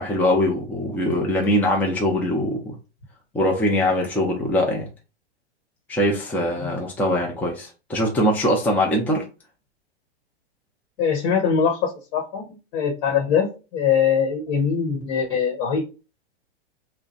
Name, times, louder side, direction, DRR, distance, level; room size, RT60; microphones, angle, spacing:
voice 1, 0.0-2.8 3.3-4.9 5.9-9.2, left 1 dB, 5° left, 0.6 m, -22 dB
voice 2, 11.0-12.4 12.7-15.8, left 7 dB, 50° left, 1.2 m, -22 dB
3.1 x 2.2 x 4.0 m
hypercardioid pair, 120°, 33 cm